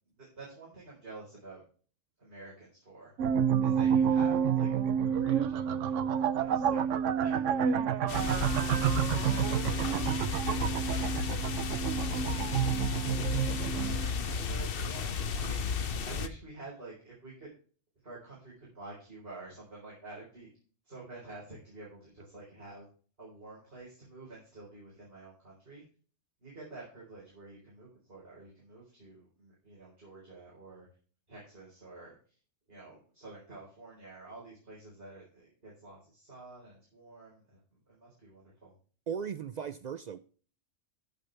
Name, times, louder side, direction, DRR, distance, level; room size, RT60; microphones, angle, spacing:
voice 1, 0.2-1.6 2.2-3.1 3.6-4.7 5.2-12.8 13.5-15.6 16.0-17.5 18.0-20.5 20.8-22.9 23.2-25.9 26.4-30.9 31.3-32.2 32.7-38.7, right 3 dB, 45° right, 4.6 m, -49 dB
sound 1, 3.2-14.1, right 8 dB, 70° right, 0.9 m, -29 dB
sound 2, 8.1-16.3, left 6 dB, 50° left, 0.9 m, -33 dB
voice 2, 39.1-40.2, right 7 dB, 85° right, 0.3 m, -37 dB
15.0 x 6.6 x 3.4 m
omnidirectional pair, 1.4 m